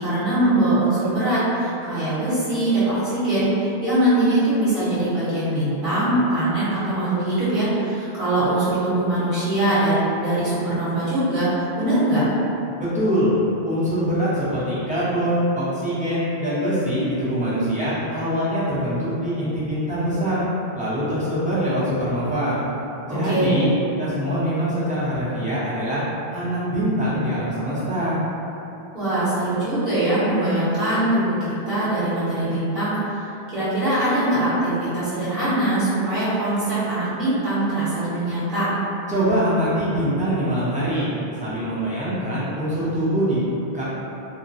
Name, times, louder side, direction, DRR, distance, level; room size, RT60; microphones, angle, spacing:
voice 1, 0.0-12.2 23.2-23.7 28.9-31.4 31.7-38.7, right 1 dB, 55° right, -13 dB, 1.2 m, -22 dB
voice 2, 12.8-13.3 13.7-20.4 20.7-22.6 23.1-23.6 24.0-26.0 26.3-28.2 39.1-41.1 41.4-43.4 43.7-43.8, equal, 10° right, -13 dB, 0.6 m, -23 dB
2.8 x 2.1 x 2.5 m, 2.9 s
omnidirectional pair, 1.1 m